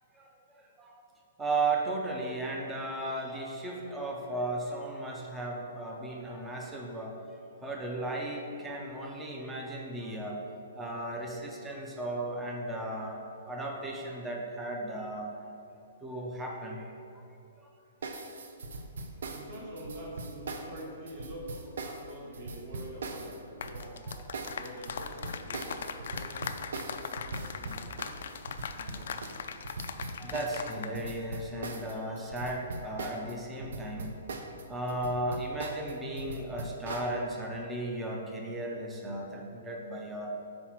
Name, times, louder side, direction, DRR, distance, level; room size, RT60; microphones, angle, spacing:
voice 1, 0.1-1.0 1.4-7.2 7.6-10.4 10.8-15.3 16.0-16.9 17.6-17.7 30.2-34.1 34.7-40.3, right 2 dB, 5° right, -1 dB, 0.6 m, -35 dB
sound 1, 18.0-33.3 33.6-37.1, right 2 dB, 75° right, 0.6 m, -40 dB
voice 2, 19.3-24.0 24.4-26.6 26.9-29.2, right 1 dB, 40° right, -3 dB, 1.5 m, -46 dB
sound 2, 23.5-31.0 31.2-31.5, left 6 dB, 65° left, 0.3 m, -40 dB
4.8 x 4.4 x 5.8 m, 2.6 s
hypercardioid pair, 170°, 0 cm